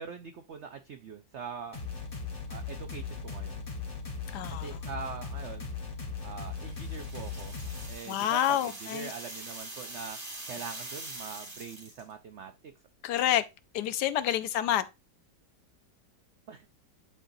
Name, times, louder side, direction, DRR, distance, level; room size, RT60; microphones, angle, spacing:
voice 1, 0.0-1.8 2.5-3.6 4.6-5.7 6.2-7.6 7.9-10.2 10.5-12.7 16.5-16.7, right 6 dB, 85° right, 0.6 m, -43 dB
sound 1, 1.7-7.9, left 5 dB, 30° left, 1.8 m, -38 dB
voice 2, 4.3-4.8 8.1-9.1 13.0-13.4 13.7-14.9, left 11 dB, 70° left, 1.1 m, -28 dB
sound 2, 6.5-12.1, right 2 dB, 40° right, 2.6 m, -43 dB
10.5 x 4.0 x 2.6 m
omnidirectional pair, 1.9 m